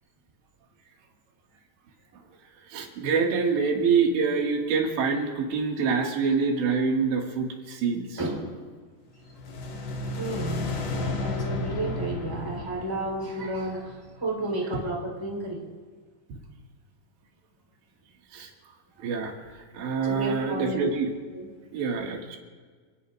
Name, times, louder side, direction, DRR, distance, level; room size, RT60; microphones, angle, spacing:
voice 1, 2.7-8.2 18.3-18.5 19.0-19.3 19.7-21.1 21.7-22.4, right 5 dB, 85° right, 0 dB, 4.2 m, -26 dB
voice 2, 8.2-8.7 10.2-15.6 20.0-20.9 21.3-21.5, right 1 dB, 5° right, -1 dB, 3.0 m, -32 dB
sound 1, 9.2-14.4, left 2 dB, 75° left, 4.1 m, -33 dB
28.5 x 18.0 x 2.5 m, 1.5 s
omnidirectional pair, 5.0 m